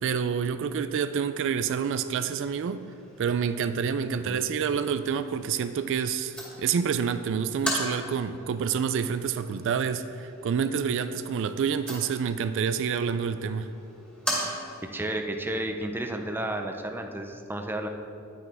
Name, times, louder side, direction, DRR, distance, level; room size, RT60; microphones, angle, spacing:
voice 1, 0.0-2.8 3.2-13.7, right 7 dB, 60° right, 11 dB, 0.3 m, -28 dB
sound 1, 2.0-15.0, equal, 5° left, 2.1 m, -39 dB
voice 2, 14.9-17.9, right 1 dB, 10° right, 4 dB, 0.5 m, -32 dB
9.7 x 9.5 x 3.5 m, 2.5 s
head